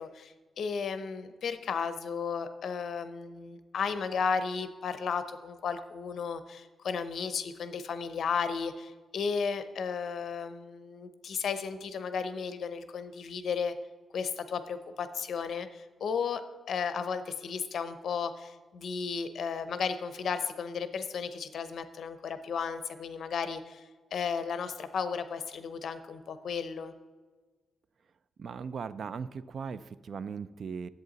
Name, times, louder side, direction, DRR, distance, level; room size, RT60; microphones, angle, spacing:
voice 1, 0.0-13.7 14.1-16.4 16.7-26.9, left 6 dB, 60° left, 10 dB, 0.7 m, -34 dB
voice 2, 28.4-30.9, right 6 dB, 50° right, 16 dB, 0.3 m, -38 dB
10.5 x 8.0 x 4.0 m, 1.3 s
wide cardioid pair, 160°, 0 cm